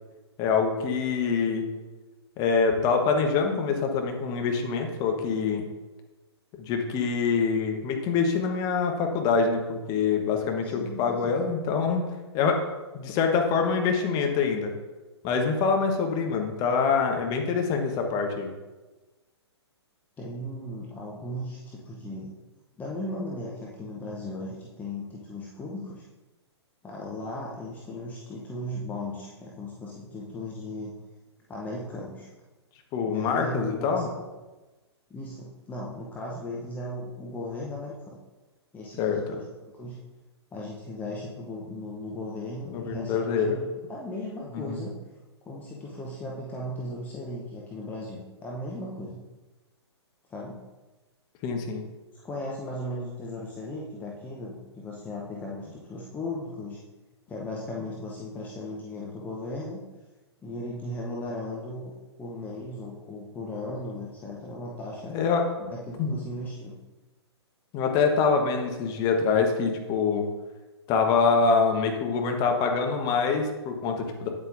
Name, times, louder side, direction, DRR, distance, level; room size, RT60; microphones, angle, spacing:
voice 1, 0.4-1.7 2.4-5.7 6.6-12.0 12.3-12.6 12.9-14.7 15.2-18.5 32.9-34.0 39.0-39.4 42.7-43.6 44.5-44.8 51.4-51.8 65.1-65.7 66.0-66.2 67.7-70.3 70.9-74.3, left 5 dB, 25° left, 3 dB, 1.1 m, -25 dB
voice 2, 10.6-11.6 20.2-22.3 22.8-26.0 26.8-30.9 31.5-32.3 33.1-34.1 35.1-38.2 38.7-40.0 40.5-44.9 45.4-49.2 50.3-50.6 52.1-56.8 57.3-59.8 60.4-61.9 62.2-65.2 65.7-66.7, left 1 dB, 10° left, -4 dB, 0.8 m, -37 dB
8.9 x 8.0 x 2.6 m, 1.2 s
figure-of-eight pair, 115°, 15 cm